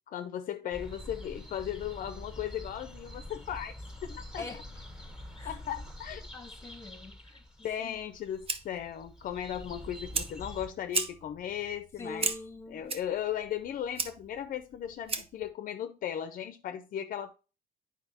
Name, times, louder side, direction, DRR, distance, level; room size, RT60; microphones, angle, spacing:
voice 1, 0.1-3.7 4.0-4.5 5.4-6.2 7.6-12.3 12.7-17.3, left 10 dB, 55° left, 0.6 m, -36 dB
sound 1, 0.7-10.7, left 1 dB, 5° right, 1.9 m, -46 dB
voice 2, 6.3-7.4 7.8-8.0 12.0-13.0, left 3 dB, 15° left, 1.2 m, -44 dB
Fire, 8.0-15.5, right 5 dB, 35° right, 0.7 m, -37 dB
8.9 x 4.8 x 2.8 m
cardioid pair, 110°, 17 cm